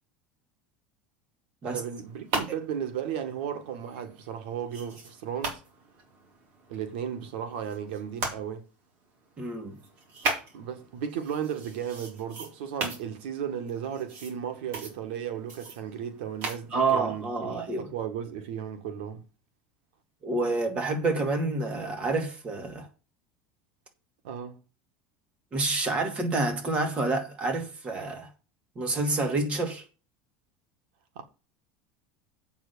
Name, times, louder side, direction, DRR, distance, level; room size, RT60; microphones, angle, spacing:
voice 1, 1.6-5.6 6.7-8.7 10.5-17.6 17.9-19.2 24.2-24.6 31.2-31.3, right 8 dB, 90° right, 1.8 m, -35 dB
sound 1, 1.9-8.3 8.8-17.4, right 3 dB, 45° right, 4.0 m, -39 dB
voice 2, 9.4-9.7 16.7-17.9 20.2-22.9 25.5-28.3 28.8-29.8, right 3 dB, 25° right, 2.4 m, -28 dB
8.2 x 6.0 x 7.0 m
cardioid pair, 170°, 5 cm